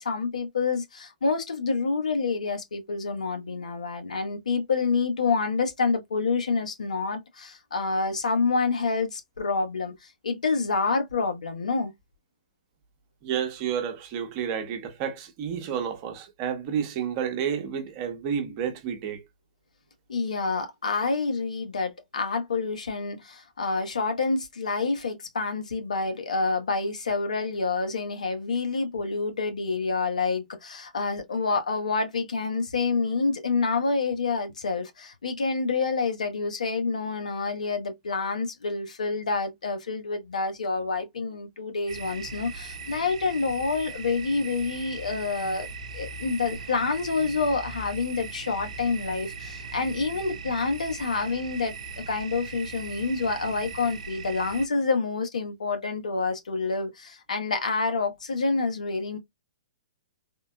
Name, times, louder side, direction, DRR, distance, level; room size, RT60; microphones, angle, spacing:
voice 1, 0.0-11.9 20.1-51.7 52.1-59.2, left 4 dB, 80° left, 1.2 m, -28 dB
voice 2, 13.2-19.2, right 8 dB, 35° right, 1.0 m, -30 dB
sound 1, 41.9-54.7, right 4 dB, 70° right, 0.7 m, -39 dB
3.6 x 2.6 x 2.2 m
hypercardioid pair, 130°, 4 cm